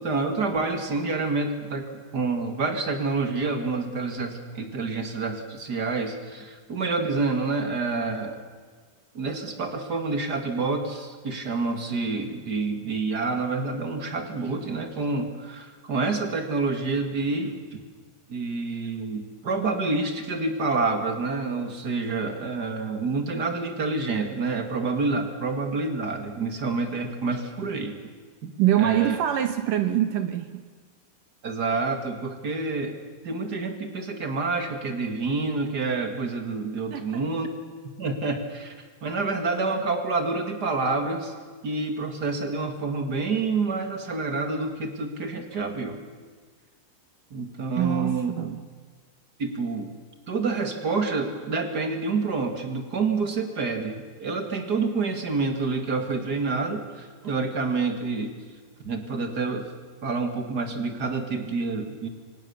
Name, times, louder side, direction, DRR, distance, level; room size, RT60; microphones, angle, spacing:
voice 1, 0.0-8.4 9.1-17.5 18.3-28.0 28.4-28.5 28.8-29.2 31.4-33.0 33.2-37.5 38.0-38.7 39.0-41.3 41.6-46.0 47.3-48.3 49.4-49.9 50.3-58.3 58.8-59.7 60.0-62.1, right 3 dB, 60° right, 6 dB, 1.0 m, -28 dB
voice 2, 28.6-30.6 36.9-37.2 47.8-48.7, right 11 dB, 80° right, 9 dB, 1.9 m, -24 dB
27.5 x 25.5 x 7.1 m, 1.5 s
omnidirectional pair, 5.4 m